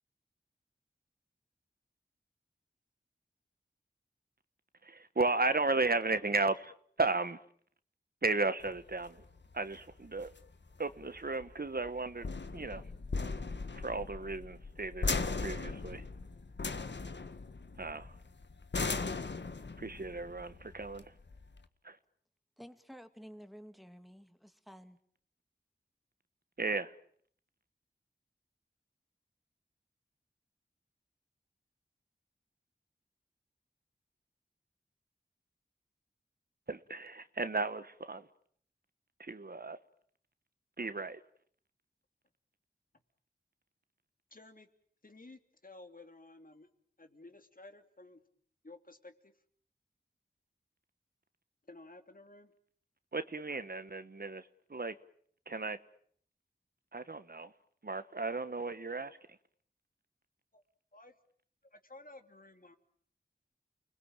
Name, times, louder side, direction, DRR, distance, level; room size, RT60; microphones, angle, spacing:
voice 1, 4.8-6.7 7.0-7.4 8.2-9.2 9.5-10.3 10.8-12.3 12.5-12.8 13.7-15.1 15.4-16.0 17.8-18.1 19.8-21.0 21.8-22.0 26.6-26.9 36.7-38.3 39.2-39.8 40.8-41.2 53.1-54.9 55.5-55.8 56.9-57.5 57.8-59.2, right 3 dB, 55° right, 1.4 m, -34 dB
sound 1, 8.6-21.6, left 4 dB, 80° left, 1.6 m, -39 dB
voice 2, 22.6-25.0, equal, ahead, 2.4 m, -52 dB
voice 3, 44.3-44.7 45.0-46.7 47.0-48.2 48.6-49.3 51.6-52.5 60.5-60.6 60.9-61.1 61.7-62.8, left 2 dB, 50° left, 3.0 m, -54 dB
29.5 x 21.0 x 9.0 m
wide cardioid pair, 50°, 18 cm